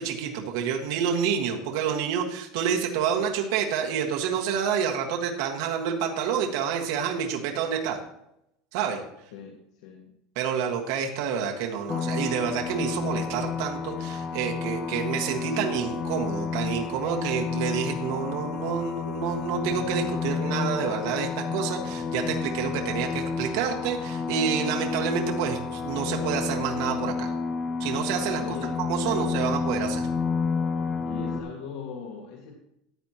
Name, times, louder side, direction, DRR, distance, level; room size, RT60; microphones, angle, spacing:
voice 1, 0.0-8.0 8.7-9.0 10.3-27.3 27.8-28.4 28.8-30.1, right 7 dB, 65° right, 1 dB, 1.5 m, -28 dB
voice 2, 9.3-10.2 28.3-29.5 31.0-32.5, left 6 dB, 70° left, 1 dB, 1.6 m, -39 dB
sound 1, 11.9-31.4, left 5 dB, 20° left, 0.7 m, -30 dB
14.0 x 9.5 x 2.9 m, 0.81 s
supercardioid pair, 170°, 2 cm